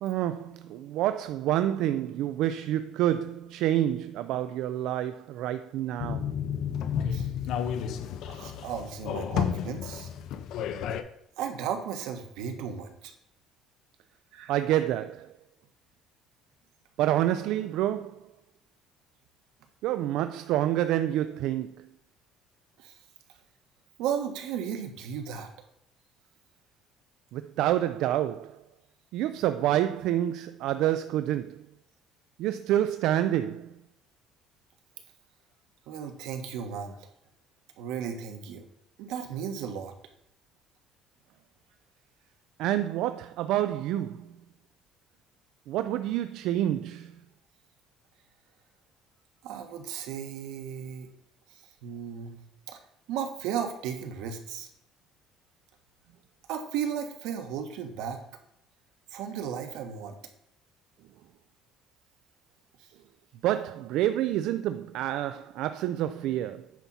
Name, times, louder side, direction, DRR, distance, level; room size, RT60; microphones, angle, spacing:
voice 1, 0.0-6.3 14.5-15.3 17.0-18.3 19.8-21.9 27.3-28.6 29.1-31.7 32.4-33.8 42.6-44.3 45.7-47.2 63.4-66.7, right 12 dB, 65° right, 0.3 m, -28 dB
sound 1, 6.0-11.0, left 8 dB, 55° left, 0.6 m, -31 dB
voice 2, 8.3-10.1 11.4-13.1 14.3-14.6 22.8-22.9 24.0-25.5 35.9-37.1 37.8-38.7 39.0-39.9 49.4-51.1 51.5-52.8 53.1-54.7 56.5-58.2 59.1-60.2 62.8-62.9, right 8 dB, 85° right, 1.3 m, -35 dB
9.1 x 4.2 x 5.9 m
cardioid pair, 175°, 0 cm